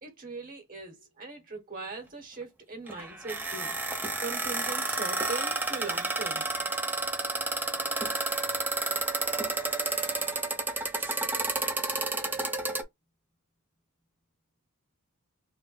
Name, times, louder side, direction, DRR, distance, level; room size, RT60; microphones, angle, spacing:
voice 1, 0.0-6.4, right 3 dB, 40° right, 1.3 m, -40 dB
sound 1, 2.9-12.8, right 3 dB, 10° right, 0.7 m, -31 dB
3.4 x 2.1 x 4.0 m
head